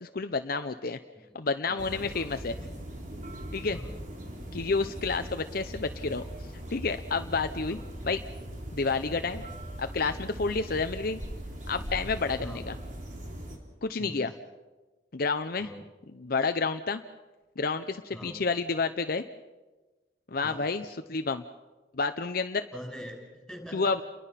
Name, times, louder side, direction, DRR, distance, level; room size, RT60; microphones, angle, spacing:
voice 1, 0.0-1.0 1.3-2.5 3.5-3.8 4.5-6.2 6.7-7.8 8.0-8.2 8.7-9.4 9.8-11.2 11.7-12.7 13.8-14.3 15.1-15.7 16.2-17.0 17.6-19.2 20.3-21.4 22.0-22.6 23.7-24.0, left 4 dB, 55° left, 8 dB, 0.8 m, -29 dB
voice 2, 1.6-2.8 3.7-4.0 7.6-7.8 12.4-12.7 14.0-14.4 15.6-15.9 18.1-18.4 20.4-20.6 22.7-23.9, equal, ahead, 1 dB, 6.1 m, -44 dB
sound 1, 1.8-13.6, right 1 dB, 45° right, 4.1 m, -40 dB
29.5 x 22.0 x 5.8 m, 1.2 s
head